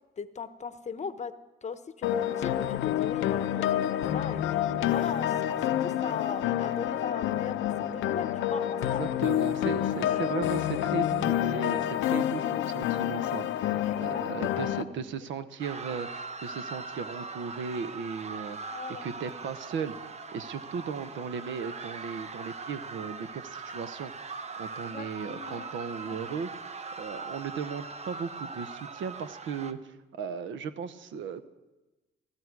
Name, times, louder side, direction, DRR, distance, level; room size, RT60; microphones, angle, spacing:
voice 1, 0.2-1.3 1.6-9.1 10.0-10.3 13.8-14.7 18.7-19.4 24.9-25.7 26.0-26.4, left 6 dB, 35° left, 12 dB, 0.8 m, -39 dB
sound 1, 2.0-14.8, left 11 dB, 85° left, 0.7 m, -28 dB
voice 2, 8.8-18.6 19.0-26.7 27.0-31.5, right 6 dB, 75° right, 12 dB, 0.9 m, -37 dB
sound 2, 15.6-29.7, right 4 dB, 35° right, 0.8 m, -41 dB
15.5 x 11.5 x 4.7 m, 1.1 s
cardioid pair, 90°, 20 cm